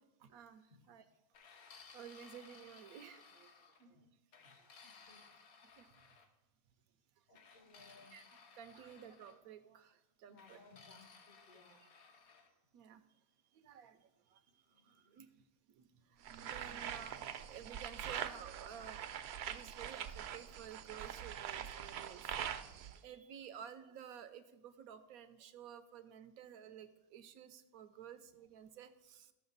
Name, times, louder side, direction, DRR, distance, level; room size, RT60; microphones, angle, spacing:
voice 1, 0.2-1.0 1.9-3.5 3.9-4.0 5.7-5.9 8.1-8.2 8.6-10.6 11.7-11.9 12.7-13.0 13.5-15.3 15.8-29.3, right 8 dB, 90° right, 11 dB, 1.1 m, -54 dB
sound 1, 1.3-3.9 4.3-6.3 7.3-9.4 10.4-12.5, left 5 dB, 85° left, 1.4 m, -60 dB
voice 2, 4.8-5.3 7.3-8.2 10.3-11.8 14.7-15.2, left 3 dB, 70° left, 1 dB, 2.2 m, -63 dB
sound 2, 16.2-23.0, right 9 dB, 65° right, 0.7 m, -44 dB
14.0 x 5.9 x 4.0 m, 1.0 s
omnidirectional pair, 1.5 m